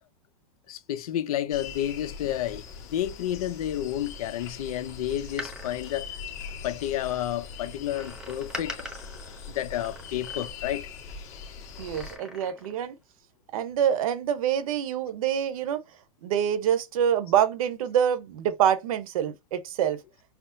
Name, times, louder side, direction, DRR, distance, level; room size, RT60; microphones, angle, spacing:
voice 1, 0.7-2.6 2.9-6.1 6.6-8.9 9.5-10.9, left 12 dB, 80° left, 0.6 m, -30 dB
sound 1, 1.5-12.2, left 5 dB, 45° left, 1.4 m, -41 dB
Door, 5.2-7.0 7.9-10.8 11.7-12.9 13.2-13.3, equal, 5° right, 0.8 m, -43 dB
voice 2, 11.8-13.0 13.5-15.8 16.2-20.0, right 9 dB, 70° right, 0.8 m, -26 dB
5.9 x 2.0 x 2.6 m
supercardioid pair, 140°, 18 cm